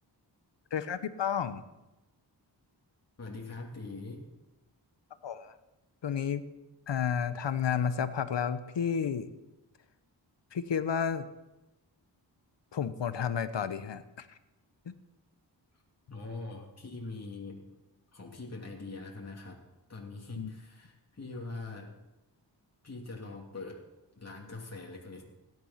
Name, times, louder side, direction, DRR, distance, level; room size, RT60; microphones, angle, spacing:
voice 1, 0.7-1.6 5.2-5.5 6.0-6.4 6.9-9.3 10.5-11.2 12.7-14.4 14.8-14.9 20.4-20.5, left 7 dB, 70° left, 12 dB, 1.2 m, -31 dB
voice 2, 3.2-4.2 16.1-17.7 18.1-19.6 19.9-21.9 22.8-23.8 24.2-25.3, left 3 dB, 35° left, -2 dB, 3.0 m, -42 dB
17.0 x 11.0 x 5.9 m, 0.99 s
cardioid pair, 55°, 45 cm